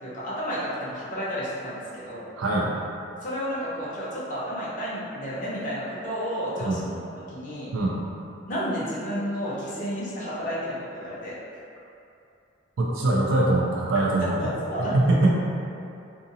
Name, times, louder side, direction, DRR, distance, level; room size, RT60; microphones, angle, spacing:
voice 1, 0.0-2.3 3.2-6.9 7.3-7.7 8.5-11.4 14.4-15.1, equal, 40° left, -9 dB, 0.7 m, -31 dB
voice 2, 2.4-2.7 6.6-6.8 7.7-8.0 12.8-14.5 14.9-15.4, right 2 dB, 90° right, -4 dB, 0.4 m, -22 dB
2.6 x 2.6 x 2.6 m, 2.6 s
head